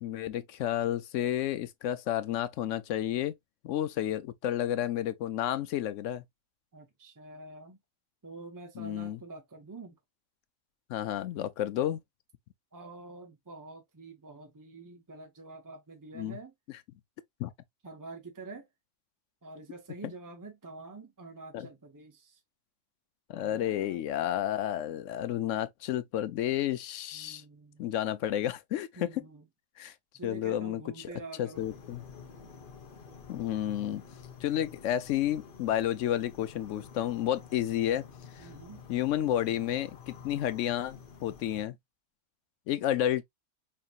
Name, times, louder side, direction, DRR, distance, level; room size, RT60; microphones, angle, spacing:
voice 1, 0.0-3.3 3.6-6.2 8.8-9.2 10.9-12.0 16.1-16.4 17.4-17.5 21.5-21.7 23.3-27.4 27.8-29.2 29.8-29.9 30.2-31.1 31.4-32.0 33.3-34.0 34.4-38.1 38.4-38.5 38.9-41.8 42.7-43.2, left 11 dB, 80° left, 0.9 m, -31 dB
voice 2, 6.7-7.8 8.2-9.9 12.7-16.5 17.8-18.7 19.4-22.4 23.3-24.0 27.1-27.8 29.0-29.4 30.1-31.7 32.4-32.5 38.4-38.8, right 3 dB, 25° right, 0.5 m, -47 dB
sound 1, 31.5-41.6, left 6 dB, 45° left, 1.0 m, -50 dB
5.6 x 2.8 x 2.4 m
omnidirectional pair, 1.3 m